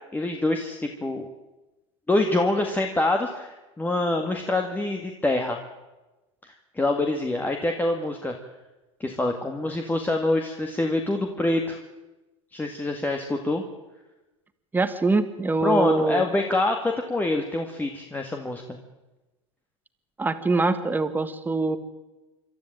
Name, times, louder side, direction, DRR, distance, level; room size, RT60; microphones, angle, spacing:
voice 1, 0.1-1.3 2.1-5.6 6.7-8.4 9.0-11.8 12.5-13.6 15.6-18.8, left 2 dB, 10° left, 3 dB, 1.9 m, -25 dB
voice 2, 14.7-16.2 20.2-21.8, right 3 dB, 10° right, 10 dB, 1.7 m, -24 dB
26.5 x 13.0 x 8.9 m, 1.1 s
supercardioid pair, 115°, 17 cm